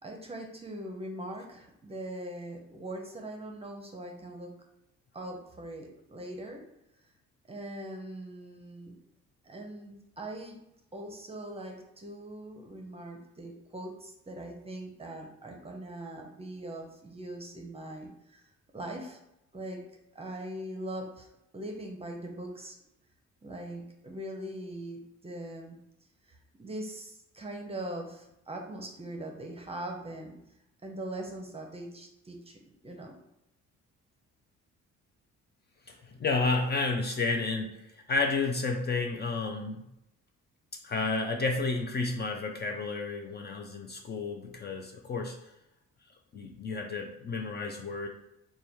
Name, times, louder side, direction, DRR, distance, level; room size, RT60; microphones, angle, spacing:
voice 1, 0.0-4.5 5.1-6.6 7.5-9.0 9.4-10.6 10.9-19.2 19.5-19.8 20.1-21.3 21.5-22.8 23.4-25.8 26.3-30.4 30.8-33.2, right 1 dB, 20° right, 2 dB, 0.7 m, -41 dB
voice 2, 35.9-39.8 40.8-45.5 46.3-48.1, left 3 dB, 35° left, 2 dB, 0.4 m, -31 dB
3.3 x 2.3 x 4.3 m, 0.84 s
cardioid pair, 90°, 30 cm